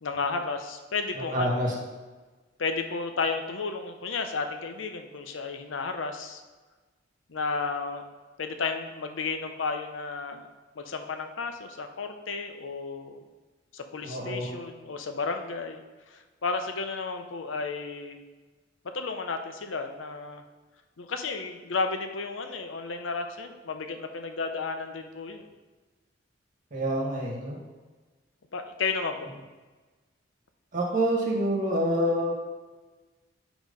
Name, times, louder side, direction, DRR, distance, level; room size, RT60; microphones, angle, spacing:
voice 1, 0.0-1.6 2.6-6.4 7.3-8.0 8.4-10.5 10.8-13.2 13.7-15.8 16.1-18.2 18.9-20.4 21.0-25.5 28.5-29.3, left 4 dB, 85° left, 6 dB, 0.7 m, -33 dB
voice 2, 1.3-1.7 14.0-14.5 26.7-27.6 30.7-32.3, equal, 45° right, -2 dB, 1.5 m, -27 dB
8.3 x 3.0 x 5.2 m, 1.3 s
head